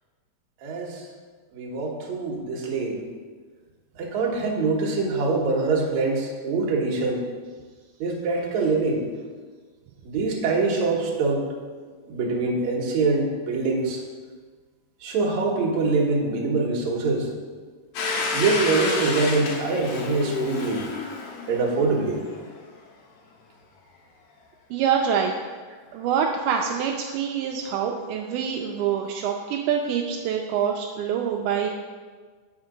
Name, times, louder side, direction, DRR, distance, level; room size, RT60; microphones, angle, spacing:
voice 1, 0.6-1.1 1.5-3.0 4.0-7.3 8.0-9.0 10.0-11.5 12.1-14.0 15.0-17.3 18.3-20.8 21.5-22.2, right 3 dB, 70° right, -1 dB, 2.3 m, -24 dB
Domestic sounds home sounds, 17.9-22.6, left 4 dB, 75° left, 2.5 m, -30 dB
voice 2, 24.7-25.3 25.9-31.7, right 7 dB, 85° right, 1 dB, 2.1 m, -25 dB
8.5 x 4.4 x 4.9 m, 1.5 s
omnidirectional pair, 3.6 m